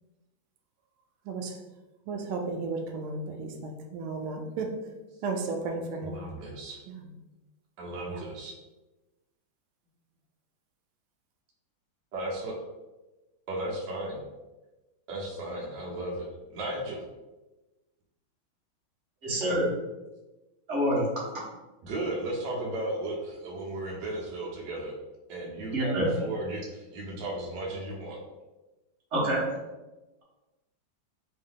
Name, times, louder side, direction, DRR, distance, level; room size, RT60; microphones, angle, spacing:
voice 1, 1.3-1.6 2.1-4.8 5.2-6.2 6.9-7.1 8.1-8.2, right 3 dB, 80° right, 4 dB, 1.4 m, -34 dB
voice 2, 6.0-6.8 7.8-8.5 12.1-12.5 13.5-14.2 15.1-17.0 21.8-24.9 25.3-28.2, right 1 dB, 65° right, -3 dB, 1.3 m, -35 dB
voice 3, 19.2-19.7 20.7-21.2 25.7-26.1 29.1-29.4, equal, 40° right, -5 dB, 1.2 m, -26 dB
3.6 x 2.7 x 3.6 m, 1.1 s
omnidirectional pair, 2.3 m